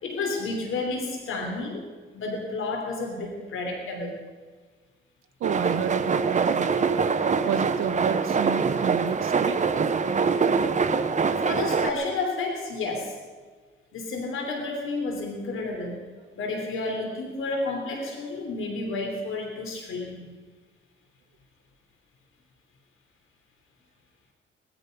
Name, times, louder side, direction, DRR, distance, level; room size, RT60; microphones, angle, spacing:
voice 1, 0.0-1.8 2.1-4.2 11.4-13.2 13.9-16.0 16.4-20.3, left 3 dB, 80° left, 2 dB, 3.3 m, -31 dB
sound 1, 5.4-11.9, right 5 dB, 35° right, 1.0 m, -24 dB
voice 2, 5.4-7.1 7.5-9.7, right 8 dB, 80° right, 8 dB, 0.9 m, -31 dB
19.5 x 13.5 x 5.3 m, 1.4 s
cardioid pair, 110°, 21 cm